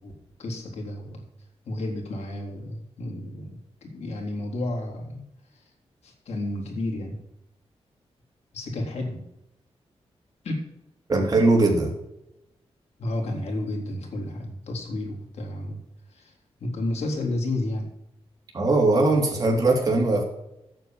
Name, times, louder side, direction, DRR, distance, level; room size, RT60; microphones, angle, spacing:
voice 1, 0.4-1.2 1.7-5.2 6.0-7.2 8.5-9.2 10.4-10.6 11.2-11.3 13.0-15.8 16.1-16.3 16.6-17.9, left 1 dB, 80° left, 1 dB, 3.5 m, -31 dB
voice 2, 11.1-11.9 18.5-20.2, right 2 dB, 35° right, 0 dB, 3.3 m, -20 dB
9.2 x 6.9 x 7.4 m, 0.85 s
wide cardioid pair, 115°, 11 cm